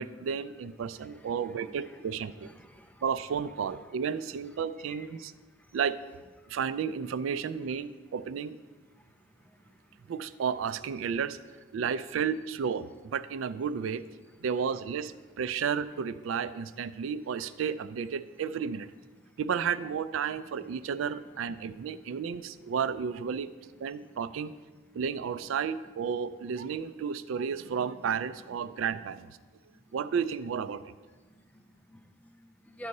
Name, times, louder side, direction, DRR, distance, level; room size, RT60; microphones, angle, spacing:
voice 1, 0.0-2.5 3.0-5.3 5.7-6.0 6.5-8.6 10.1-14.1 14.4-18.9 19.4-23.5 23.8-24.5 24.9-29.3 29.9-30.8, right 7 dB, 90° right, 14 dB, 0.4 m, -32 dB
voice 2, 1.0-1.3 2.4-3.0 4.9-5.3 5.6-5.8 9.0-9.1 9.4-9.8 29.7-29.8 31.3-32.9, equal, 10° left, 5 dB, 0.6 m, -50 dB
11.0 x 4.1 x 6.5 m, 1.3 s
head